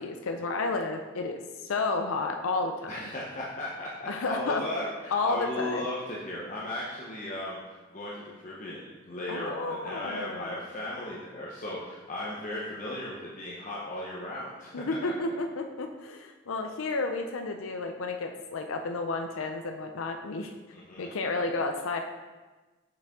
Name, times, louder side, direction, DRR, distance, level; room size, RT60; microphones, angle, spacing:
voice 1, 0.0-2.9 4.1-4.6 5.1-5.8 9.3-10.5 14.7-20.5 21.0-22.0, left 3 dB, 80° left, 5 dB, 0.5 m, -31 dB
voice 2, 2.9-14.7 20.7-21.2, left 1 dB, 40° left, -5 dB, 0.9 m, -36 dB
6.5 x 6.2 x 3.6 m, 1.2 s
head